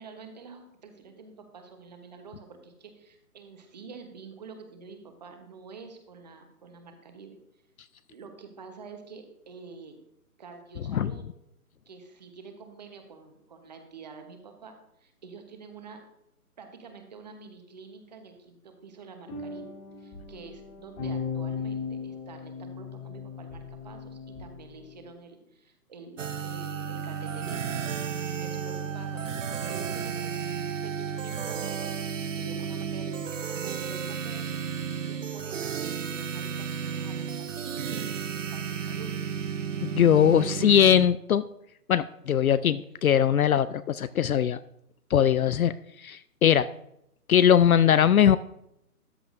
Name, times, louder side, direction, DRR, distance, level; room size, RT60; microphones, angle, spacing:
voice 1, 0.0-7.4 8.1-10.0 10.4-11.2 11.9-16.0 16.6-19.7 20.0-27.8 28.4-30.3 30.8-34.6 35.0-39.1 40.2-41.0, right 4 dB, 30° right, 6 dB, 1.1 m, -47 dB
sound 1, 19.2-25.1, left 5 dB, 15° left, 1.8 m, -37 dB
sound 2, 26.2-41.1, right 7 dB, 55° right, 0.7 m, -33 dB
voice 2, 39.8-41.4 41.9-44.6 45.1-46.7 47.3-48.4, left 9 dB, 70° left, 15 dB, 0.5 m, -21 dB
13.5 x 9.5 x 2.6 m, 0.80 s
hypercardioid pair, 160°, 45 cm